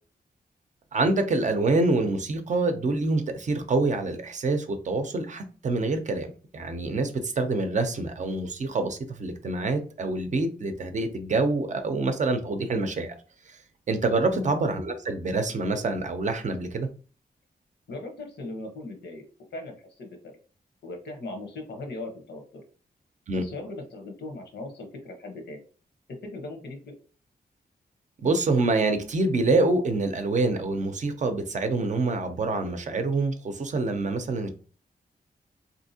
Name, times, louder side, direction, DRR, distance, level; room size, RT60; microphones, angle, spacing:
voice 1, 0.9-6.3 6.5-13.1 13.5-13.6 13.9-16.9 23.3-23.4 28.2-34.5, right 3 dB, 45° right, 7 dB, 0.5 m, -26 dB
voice 2, 17.9-19.2 19.5-20.3 20.8-22.4 23.3-25.6 26.2-26.9, left 2 dB, 85° left, 3 dB, 0.9 m, -38 dB
3.5 x 2.7 x 2.7 m, 0.38 s
wide cardioid pair, 180°, 17 cm